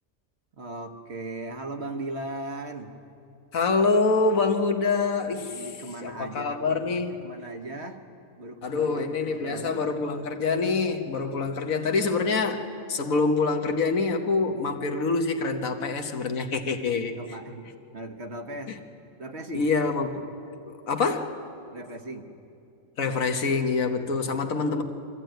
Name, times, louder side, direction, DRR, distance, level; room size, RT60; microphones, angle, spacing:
voice 1, 0.6-2.9 5.5-6.9 7.2-8.0 8.4-9.8 17.2-18.9 19.2-19.7 21.7-22.3, right 1 dB, 50° right, 5 dB, 1.5 m, -38 dB
voice 2, 3.5-5.7 6.0-7.3 8.6-17.2 18.7-18.8 19.5-20.2 20.9-21.4 23.0-24.8, left 4 dB, 75° left, 5 dB, 1.6 m, -26 dB
23.5 x 14.5 x 9.1 m, 2.6 s
omnidirectional pair, 1.4 m